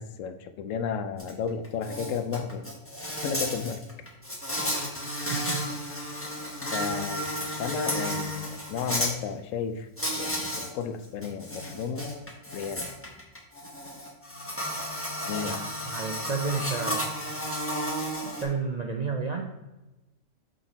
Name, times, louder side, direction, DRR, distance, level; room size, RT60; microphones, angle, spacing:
voice 1, 0.0-2.6 3.2-3.8 6.7-9.9 10.2-12.1 12.5-12.8 15.3-15.7, left 6 dB, 85° left, 9 dB, 1.0 m, -33 dB
Insect, 1.2-1.3 1.6-9.1 10.0-10.7 11.0-18.4, equal, 10° left, 1.1 m, -32 dB
voice 2, 5.3-5.6 15.8-17.2 18.2-19.4, right 4 dB, 45° right, 1 dB, 0.5 m, -31 dB
5.9 x 5.3 x 4.1 m, 1.0 s
omnidirectional pair, 1.3 m